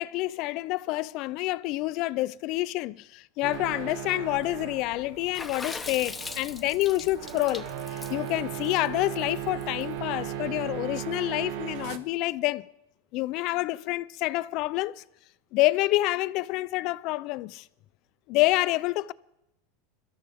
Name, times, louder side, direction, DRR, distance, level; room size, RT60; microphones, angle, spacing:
voice 1, 0.0-12.6 13.1-15.0 15.5-17.7 18.3-19.1, left 18 dB, 50° left, 0.5 m, -28 dB
sound 1, 3.4-12.0, right 10 dB, 60° right, 1.4 m, -37 dB
Water / Splash splatter, 5.3-9.8, left 4 dB, 10° left, 0.9 m, -39 dB
24.0 x 13.5 x 3.6 m
supercardioid pair, 150°, 0 cm